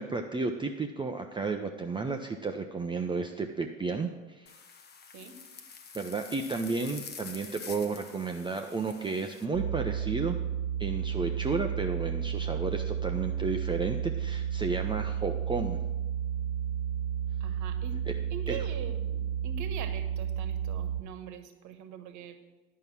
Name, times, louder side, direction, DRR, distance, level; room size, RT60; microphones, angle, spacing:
voice 1, 0.0-4.5 5.9-10.4 10.8-15.8 18.5-18.6, right 4 dB, 10° right, 3 dB, 0.6 m, -32 dB
sound 1, 4.5-9.5, left 6 dB, 25° left, 0.9 m, -47 dB
sound 2, 9.5-21.0, right 9 dB, 75° left, 1.7 m, -32 dB
voice 2, 17.4-18.0 18.3-22.4, right 7 dB, 45° right, 8 dB, 1.3 m, -43 dB
10.5 x 5.5 x 7.2 m, 1.2 s
figure-of-eight pair, 70°, 40 cm